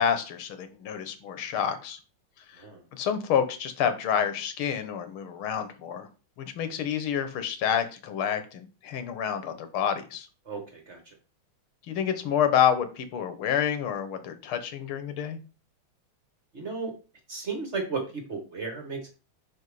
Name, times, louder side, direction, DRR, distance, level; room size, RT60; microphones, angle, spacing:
voice 1, 0.0-2.0 2.4-2.6 2.9-6.1 6.4-10.3 11.9-15.4, left 8 dB, 85° left, 10 dB, 1.8 m, -28 dB
voice 2, 10.5-11.0 16.5-16.9 17.3-19.1, right 4 dB, 40° right, 3 dB, 1.4 m, -34 dB
5.6 x 4.8 x 4.8 m, 0.33 s
omnidirectional pair, 2.3 m